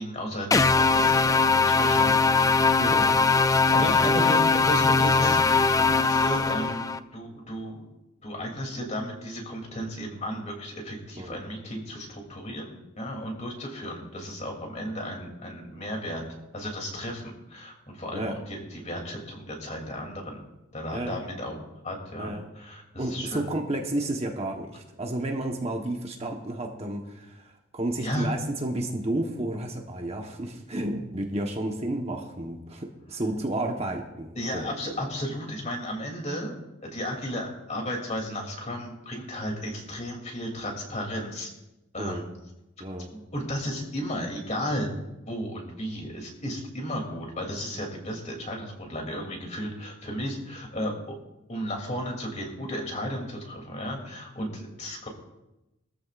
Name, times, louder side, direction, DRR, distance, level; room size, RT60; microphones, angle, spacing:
voice 1, 0.0-2.3 2.9-3.0 3.7-7.8 8.2-16.2 16.5-20.4 20.7-21.6 21.8-23.5 28.0-28.3 34.3-36.5 36.8-41.5 41.9-42.3 43.1-44.9 45.3-51.2 51.5-55.1, equal, 35° left, 1 dB, 2.9 m, -34 dB
sound 1, 0.5-7.0, left 4 dB, 15° left, 0.3 m, -21 dB
voice 2, 2.8-3.1 3.5-4.2 11.2-11.4 18.1-18.4 20.9-21.2 22.2-22.5 23.0-34.7 42.0-42.2 42.8-43.1, right 1 dB, 30° right, 2 dB, 1.2 m, -32 dB
21.0 x 13.5 x 2.5 m, 0.95 s
head